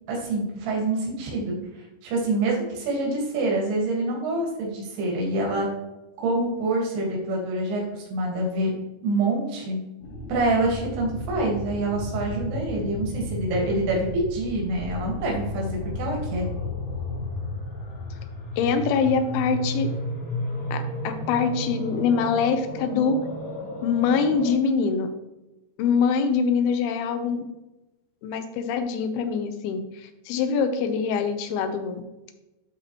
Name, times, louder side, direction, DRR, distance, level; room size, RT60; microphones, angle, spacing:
voice 1, 0.1-5.7 6.2-8.7 9.0-9.8 10.3-16.5, right 2 dB, 85° right, -2 dB, 3.7 m, -26 dB
sound 1, 10.0-24.5, left 1 dB, 50° left, 3.8 m, -33 dB
voice 2, 18.6-19.9 20.7-23.2 23.8-25.1 25.8-27.4 28.2-32.0, left 5 dB, 85° left, 8 dB, 2.6 m, -24 dB
12.0 x 4.1 x 3.0 m, 1.0 s
omnidirectional pair, 4.5 m